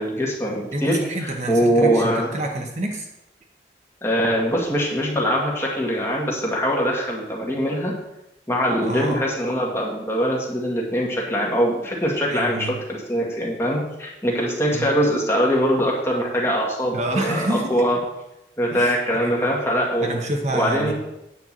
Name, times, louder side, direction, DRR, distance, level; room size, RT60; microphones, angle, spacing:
voice 1, 0.0-2.3 4.0-7.9 8.5-18.0 18.6-20.1 20.5-20.9, equal, 15° left, -2 dB, 1.9 m, -22 dB
voice 2, 0.7-3.1 8.9-9.2 12.3-12.8 14.7-14.9 16.9-17.9 18.7-19.6 20.0-20.9, right 1 dB, 40° right, 1 dB, 1.1 m, -28 dB
9.3 x 4.6 x 7.4 m, 0.91 s
head